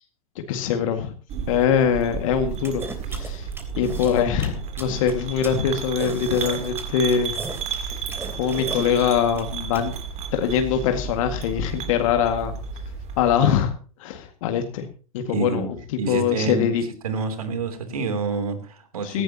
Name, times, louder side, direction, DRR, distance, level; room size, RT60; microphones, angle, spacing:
voice 1, 0.4-1.1 1.5-2.8 3.1-3.5 3.8-7.4 7.8-8.0 8.3-9.9 10.3-12.5 13.2-13.7 14.0-14.9 15.1-16.8 19.0-19.2, left 8 dB, 60° left, 6 dB, 2.0 m, -23 dB
sound 1, 1.3-13.6, right 6 dB, 35° right, 3.1 m, -33 dB
sound 2, 2.6-9.8, right 2 dB, 10° right, 3.5 m, -36 dB
voice 2, 15.3-15.7 16.0-16.7 17.0-19.2, right 4 dB, 80° right, 9 dB, 3.1 m, -27 dB
17.5 x 15.0 x 2.9 m, 0.38 s
hypercardioid pair, 100°, 19 cm